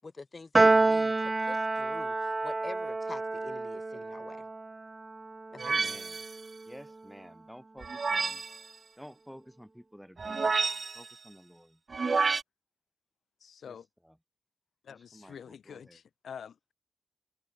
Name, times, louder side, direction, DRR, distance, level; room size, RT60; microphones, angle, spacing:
voice 1, 0.0-4.5 5.5-6.0, left 3 dB, 35° left, 5.9 m, -46 dB
Piano, 0.5-7.1, right 3 dB, 25° right, 1.2 m, -29 dB
voice 2, 5.6-6.2 6.7-8.4 9.0-11.8 13.6-13.8 14.0-14.2 14.9-16.0, equal, ahead, 4.5 m, -52 dB
sound 1, 5.6-6.4 7.8-8.6 10.2-11.1 11.9-12.4, right 4 dB, 40° right, 0.7 m, -29 dB
voice 3, 13.4-13.9 14.8-16.7, left 7 dB, 85° left, 1.0 m, -47 dB
wide cardioid pair, 135°, 0 cm